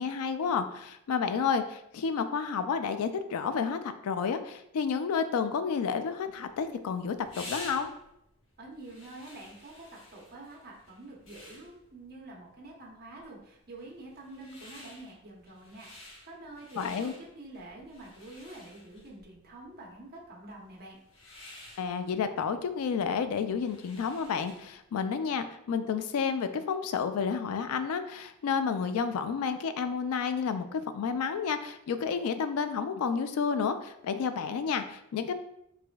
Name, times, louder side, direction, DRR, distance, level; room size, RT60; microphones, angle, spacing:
voice 1, 0.0-7.9 16.8-17.1 21.8-35.3, left 6 dB, 85° left, 9 dB, 0.3 m, -30 dB
sound 1, 6.3-24.8, left 1 dB, 65° left, 1.0 m, -51 dB
voice 2, 8.6-9.9 10.1-21.0, right 2 dB, 45° right, -2 dB, 0.9 m, -47 dB
4.8 x 2.6 x 2.3 m, 0.79 s
head